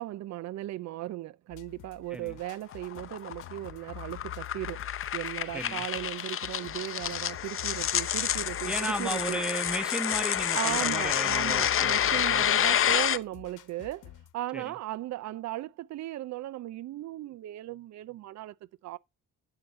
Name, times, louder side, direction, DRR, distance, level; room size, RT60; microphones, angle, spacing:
voice 1, 0.0-4.9 5.1-9.4 10.5-14.0 14.3-18.5 18.8-19.0, right 15 dB, 65° right, 0.5 m, -37 dB
sound 1, 1.5-14.3, left 14 dB, 85° left, 1.1 m, -47 dB
sound 2, 2.4-13.2, left 10 dB, 45° left, 0.7 m, -29 dB
voice 2, 8.6-12.0 12.3-12.4 14.5-14.6, right 1 dB, 5° right, 1.2 m, -35 dB
12.5 x 5.9 x 4.2 m
cardioid pair, 90°, 30 cm